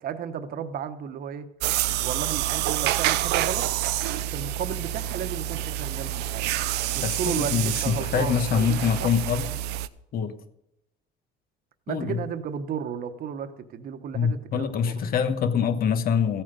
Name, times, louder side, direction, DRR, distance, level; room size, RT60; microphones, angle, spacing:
voice 1, 0.0-1.5 2.0-3.7 4.3-6.5 6.9-9.1 11.9-15.0, right 8 dB, 60° right, 10 dB, 1.1 m, -34 dB
sound 1, 1.6-9.9, right 13 dB, 85° right, 0.6 m, -28 dB
voice 2, 7.0-9.5 10.1-10.3 11.9-12.2 14.1-16.4, left 7 dB, 60° left, 9 dB, 1.3 m, -25 dB
15.0 x 8.8 x 5.2 m, 0.84 s
cardioid pair, 110°, 17 cm